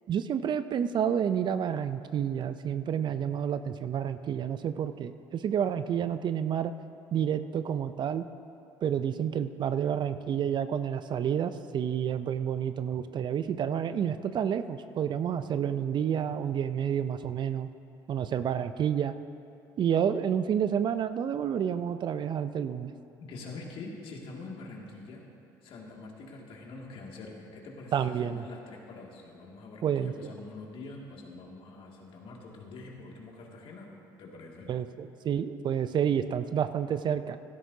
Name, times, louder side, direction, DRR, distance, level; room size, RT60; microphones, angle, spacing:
voice 1, 0.1-6.7 7.1-8.3 8.8-17.7 18.1-19.1 19.8-22.9 27.9-28.4 29.8-30.3 34.7-37.4, right 8 dB, 45° right, 12 dB, 0.5 m, -29 dB
voice 2, 23.2-25.2 25.6-33.9 34.2-34.7, left 3 dB, 60° left, -1 dB, 2.3 m, -45 dB
16.0 x 13.0 x 2.8 m, 2.7 s
hypercardioid pair, 70°, 10 cm